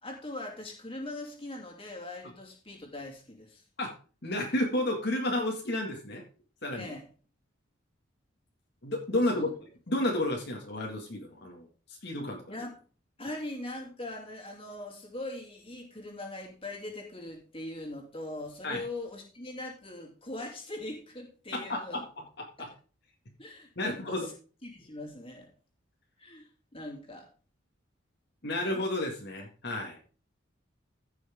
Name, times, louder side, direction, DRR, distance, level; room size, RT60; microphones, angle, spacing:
voice 1, 0.0-3.6 6.8-7.1 9.3-9.5 12.5-12.8 13.2-22.0 22.6-22.7 23.4-24.3 24.6-25.5 26.2-27.3, left 2 dB, 25° left, 1 dB, 2.8 m, -41 dB
voice 2, 4.2-6.2 6.6-6.9 8.8-9.5 9.9-11.7 12.0-12.4 18.6-18.8 21.5-22.0 22.4-22.7 23.8-24.3 28.4-30.0, left 1 dB, 55° left, 0 dB, 2.0 m, -31 dB
15.5 x 6.2 x 3.6 m, 0.37 s
head